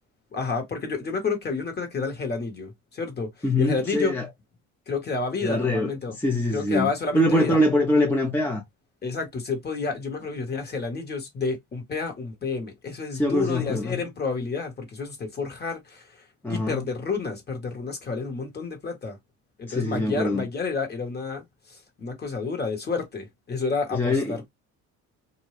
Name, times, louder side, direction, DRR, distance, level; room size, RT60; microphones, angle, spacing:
voice 1, 0.3-3.3 3.6-4.1 4.9-6.1 6.5-7.6 9.0-16.1 16.5-19.2 19.6-24.5, left 4 dB, 30° left, 1.3 m, -30 dB
voice 2, 3.4-4.3 5.4-5.9 6.2-8.6 13.1-14.0 16.4-16.8 19.7-20.5 23.9-24.4, left 1 dB, 5° left, 0.6 m, -23 dB
2.7 x 2.3 x 3.2 m
cardioid pair, 110°, 32 cm